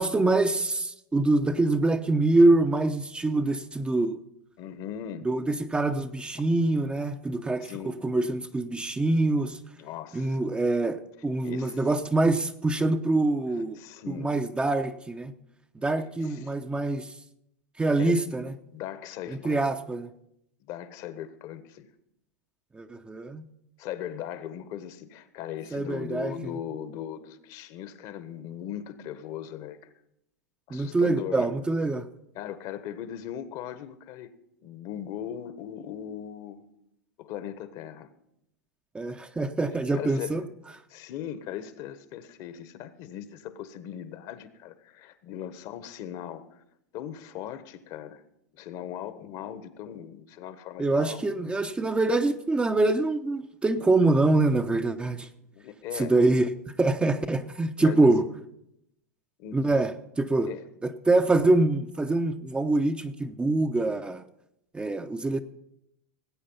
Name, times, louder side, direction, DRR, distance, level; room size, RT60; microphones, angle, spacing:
voice 1, 0.0-4.2 5.2-9.6 10.1-13.8 14.1-15.3 15.7-17.1 17.8-18.5 19.4-20.1 22.7-23.4 25.7-26.3 30.7-32.1 38.9-40.4 50.8-55.3 55.9-58.3 59.5-60.5 60.8-64.2 64.7-65.4, right 2 dB, 10° right, 7 dB, 0.8 m, -25 dB
voice 2, 4.6-5.3 7.6-7.9 9.8-10.4 11.4-11.8 13.7-14.3 16.0-16.5 18.0-18.4 18.7-19.6 20.7-21.9 23.8-29.8 30.7-31.5 32.3-34.3 34.6-36.7 37.2-38.1 39.9-40.4 40.9-46.4 46.9-48.2 48.5-51.3 55.5-56.2 57.8-58.1 59.4-59.7 60.4-60.6, left 10 dB, 50° left, 13 dB, 1.3 m, -39 dB
19.0 x 8.5 x 5.6 m, 0.80 s
hypercardioid pair, 100°, 9 cm